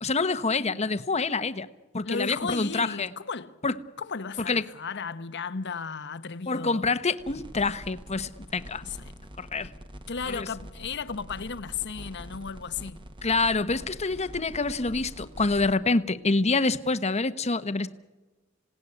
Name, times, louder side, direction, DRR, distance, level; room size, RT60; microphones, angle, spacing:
voice 1, 0.0-1.7 1.9-3.1 3.6-3.7 4.4-4.7 6.5-8.8 9.4-9.7 10.3-10.5 13.2-17.9, left 3 dB, 30° left, 1.0 m, -26 dB
voice 2, 0.6-0.9 2.0-3.5 4.0-6.9 8.8-9.1 10.1-13.0, left 5 dB, 60° left, 1.0 m, -35 dB
sound 1, 7.2-15.7, equal, 25° right, 1.5 m, -45 dB
27.0 x 18.0 x 9.8 m
head